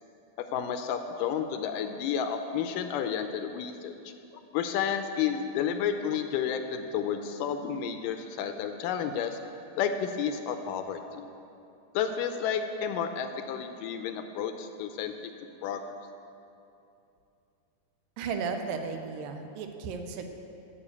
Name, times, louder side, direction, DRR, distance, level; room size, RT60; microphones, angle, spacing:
voice 1, 0.5-3.9 4.5-9.4 9.8-11.3 11.9-15.1 15.6-15.8, left 8 dB, 80° left, 7 dB, 2.0 m, -31 dB
voice 2, 18.2-20.3, right 5 dB, 85° right, 6 dB, 2.4 m, -34 dB
12.0 x 5.5 x 8.4 m, 2.7 s
omnidirectional pair, 4.2 m